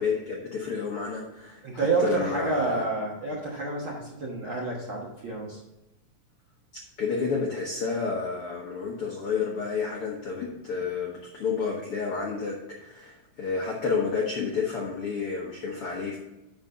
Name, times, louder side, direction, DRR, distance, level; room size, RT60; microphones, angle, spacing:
voice 1, 0.0-2.9 7.0-16.2, left 5 dB, 65° left, -2 dB, 1.4 m, -30 dB
voice 2, 1.6-5.6, right 3 dB, 50° right, -3 dB, 1.6 m, -29 dB
11.0 x 4.0 x 5.5 m, 0.97 s
omnidirectional pair, 4.0 m